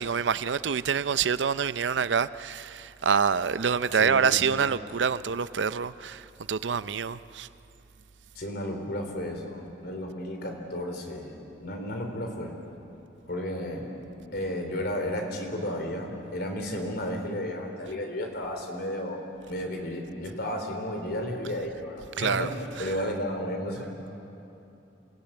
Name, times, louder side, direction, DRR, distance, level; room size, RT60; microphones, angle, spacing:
voice 1, 0.0-7.5 22.2-22.5 22.8-22.9, right 6 dB, 75° right, 0.5 m, -26 dB
voice 2, 4.0-4.4 8.4-12.6 13.3-13.9 14.3-24.1, left 1 dB, 60° left, 3.8 m, -33 dB
28.0 x 17.0 x 9.0 m
head